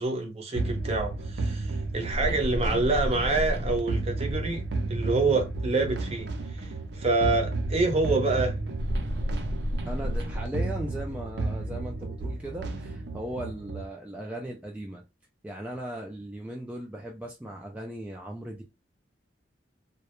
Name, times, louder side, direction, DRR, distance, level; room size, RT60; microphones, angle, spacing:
voice 1, 0.0-4.6 4.9-8.6, right 3 dB, 35° right, 0.6 m, -27 dB
sound 1, 0.6-13.9, right 2 dB, 75° right, 0.5 m, -31 dB
voice 2, 9.9-15.0 15.4-18.6, right 1 dB, 10° right, 0.3 m, -38 dB
2.2 x 2.1 x 2.9 m
head